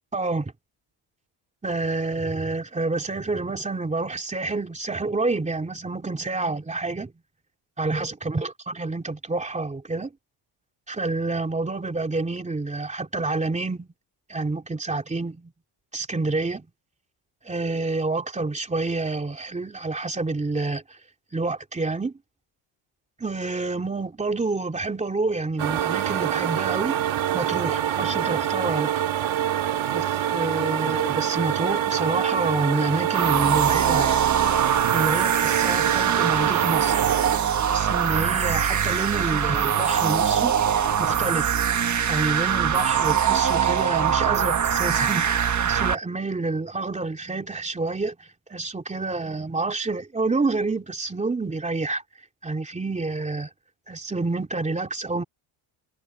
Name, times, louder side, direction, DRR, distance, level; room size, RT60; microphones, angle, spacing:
voice 1, 0.1-0.5 1.6-7.1 7.8-10.1 10.9-13.9 14.3-15.5 15.9-16.7 17.4-20.8 21.3-22.1 23.2-26.9 27.3-28.9 29.9-34.2 34.9-37.0 37.6-40.5 41.0-41.6 42.1-48.2 48.5-52.0 52.4-53.5 53.9-55.2, right 3 dB, 15° right, 3.1 m, -28 dB
sound 1, 25.6-37.4, right 10 dB, 70° right, 2.2 m, -25 dB
sound 2, 33.1-46.0, right 8 dB, 35° right, 1.4 m, -23 dB
cardioid pair, 155°, 49 cm